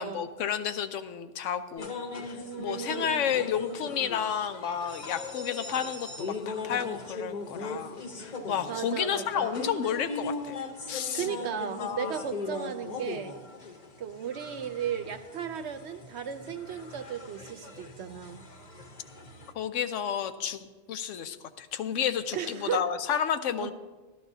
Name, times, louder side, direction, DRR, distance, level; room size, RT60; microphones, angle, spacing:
voice 1, 0.0-10.6 10.9-11.3 11.5-12.2 19.5-23.7, left 8 dB, 80° left, 10 dB, 1.0 m, -31 dB
sound 1, 1.8-19.5, left 3 dB, 40° left, 0.9 m, -39 dB
voice 2, 2.4-3.4 8.7-9.6 11.1-13.4 14.0-18.4 22.3-22.9 23.6-23.7, right 8 dB, 70° right, 8 dB, 0.9 m, -35 dB
12.5 x 12.5 x 2.7 m, 1.2 s
omnidirectional pair, 1.3 m